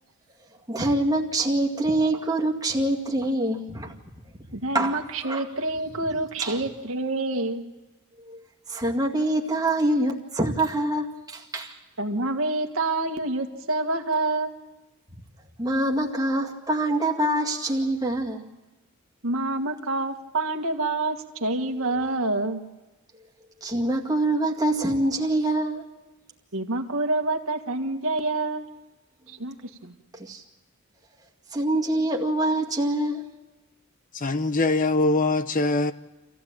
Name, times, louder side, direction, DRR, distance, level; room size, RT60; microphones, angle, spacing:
voice 1, 0.7-5.5 6.4-6.6 8.2-11.8 15.6-18.5 21.8-22.0 23.2-23.3 23.6-25.9 30.1-30.4 31.5-33.3, right 1 dB, 20° right, 2.1 m, -25 dB
voice 2, 4.5-7.6 12.0-14.5 19.2-22.6 26.5-28.7 29.3-29.5 29.8-30.0, right 2 dB, 70° right, 1.7 m, -27 dB
voice 3, 34.1-35.9, left 2 dB, 40° left, 0.7 m, -22 dB
26.5 x 15.5 x 8.8 m
head